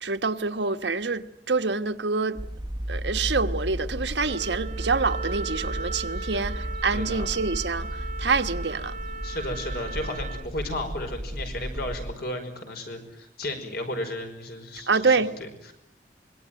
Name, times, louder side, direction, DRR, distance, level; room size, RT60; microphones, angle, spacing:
voice 1, 0.0-2.4 2.9-7.9 8.2-8.9 14.9-15.3, right 4 dB, 80° right, 1.4 m, -26 dB
sound 1, 2.4-12.1, right 1 dB, 25° right, 1.0 m, -34 dB
Wind instrument woodwind instrument, 4.2-10.5, right 4 dB, 45° right, 1.2 m, -38 dB
voice 2, 6.9-7.2 9.2-15.7, left 1 dB, 60° left, 5.4 m, -34 dB
25.5 x 23.0 x 9.2 m
head